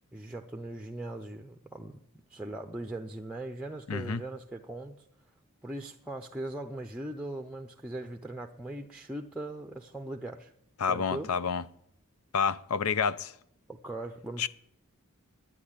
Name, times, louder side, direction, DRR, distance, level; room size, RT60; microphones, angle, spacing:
voice 1, 0.1-2.0 2.3-5.1 5.6-10.5 10.9-11.3 13.7-14.5, right 1 dB, 5° right, 0.6 m, -40 dB
voice 2, 3.9-4.2 10.8-11.6 12.3-13.3 14.4-14.5, left 6 dB, 80° left, 0.6 m, -29 dB
10.5 x 9.4 x 10.0 m
head